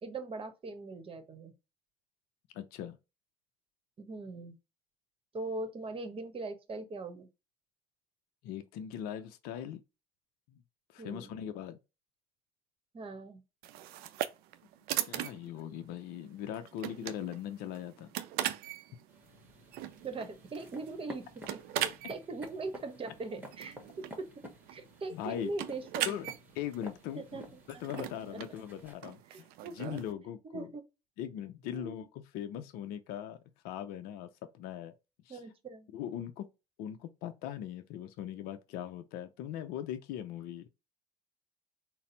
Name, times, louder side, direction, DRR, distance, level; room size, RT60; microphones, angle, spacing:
voice 1, 0.0-1.5 4.0-4.6 5.3-7.3 11.0-11.4 12.9-13.4 20.0-24.3 24.7-26.2 27.2-27.6 28.3-28.4 29.3-29.9 30.4-30.8 31.7-32.0 35.3-35.9, right 3 dB, 30° right, 1.0 m, -41 dB
voice 2, 2.5-3.0 8.4-9.8 10.5-10.6 10.9-11.8 15.0-18.1 25.1-25.5 26.1-26.3 26.5-27.4 27.8-29.2 29.8-30.7 31.2-33.4 33.6-34.3 34.5-34.9 35.3-35.4 35.9-36.5 36.8-40.7, left 10 dB, 60° left, 0.5 m, -40 dB
sound 1, 13.6-30.1, right 12 dB, 60° right, 0.5 m, -40 dB
sound 2, 19.1-28.9, equal, 10° right, 1.2 m, -51 dB
4.0 x 2.0 x 3.8 m
hypercardioid pair, 65°, 18 cm